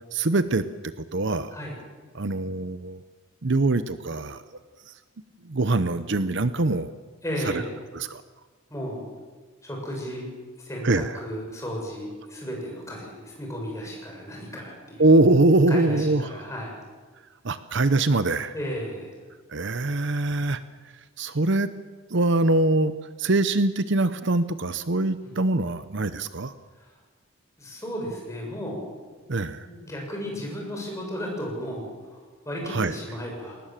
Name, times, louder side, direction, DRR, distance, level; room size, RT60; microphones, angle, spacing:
voice 1, 0.1-0.6 1.1-1.5 2.1-3.0 3.4-4.4 5.4-6.9 7.9-8.2 10.8-11.1 15.0-16.2 17.4-18.5 19.5-20.6 21.2-21.7 22.1-22.9 23.2-26.5 29.3-29.7 32.7-32.9, right 2 dB, 55° right, 12 dB, 0.8 m, -23 dB
voice 2, 7.2-7.7 8.7-9.0 9.6-10.3 10.6-15.1 15.7-16.7 18.5-19.2 25.2-25.4 26.8-26.9 27.6-28.9 29.1-29.2 29.6-33.6, equal, 15° left, -1 dB, 6.5 m, -34 dB
22.5 x 19.0 x 7.5 m, 1.4 s
head